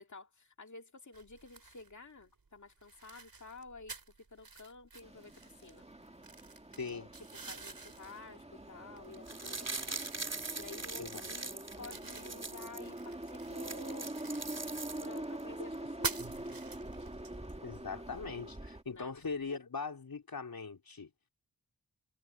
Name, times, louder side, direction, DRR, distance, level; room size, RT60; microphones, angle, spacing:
voice 1, 0.0-4.0 4.3-5.9 6.9-10.1 10.5-14.2 15.0-16.4 18.9-19.1, left 3 dB, 55° left, 2.2 m, -52 dB
sound 1, 1.1-19.5, right 4 dB, 75° right, 6.2 m, -48 dB
sound 2, 5.0-18.8, right 1 dB, 20° right, 2.1 m, -45 dB
sound 3, 9.1-12.8 13.2-13.3 13.5-15.4 15.7-15.8, right 3 dB, 45° right, 3.1 m, -42 dB
voice 2, 11.0-11.3 17.6-21.1, left 4 dB, 80° left, 3.5 m, -41 dB
wide cardioid pair, 75°, 35 cm